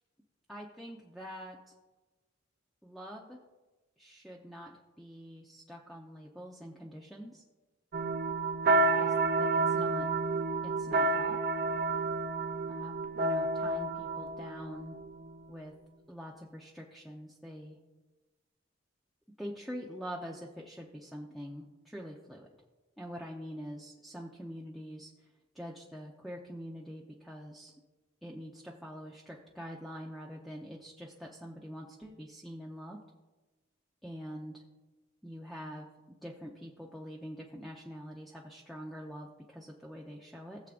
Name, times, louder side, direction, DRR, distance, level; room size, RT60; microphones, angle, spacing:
voice 1, 0.5-1.7 2.8-3.4 4.0-7.4 8.9-9.1 9.4-10.1 10.6-11.4 12.7-15.0 15.5-15.7 16.1-17.8 19.4-22.5 23.0-25.1 25.5-27.7 28.2-33.0 34.0-34.6 35.2-40.6, equal, ahead, -2 dB, 0.7 m, -45 dB
sound 1, 7.9-15.4, right 3 dB, 50° right, 0.8 m, -30 dB
20.0 x 7.3 x 2.5 m, 1.2 s
head